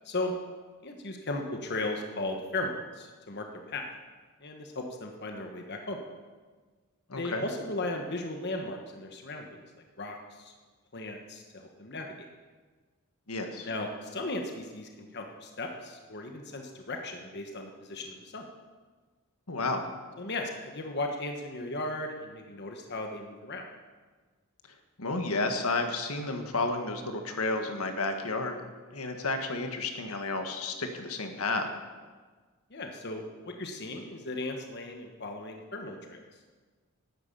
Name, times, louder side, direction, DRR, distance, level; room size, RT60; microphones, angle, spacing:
voice 1, 0.8-3.9 4.4-6.0 7.2-9.6 10.0-10.5 10.9-12.3 13.6-18.5 20.2-23.6 32.7-36.2, left 2 dB, 50° left, 3 dB, 1.3 m, -36 dB
voice 2, 7.1-7.4 13.3-13.7 19.5-19.9 25.0-28.6 28.9-31.7, left 3 dB, 80° left, 5 dB, 1.6 m, -31 dB
11.5 x 9.7 x 8.5 m, 1.4 s
head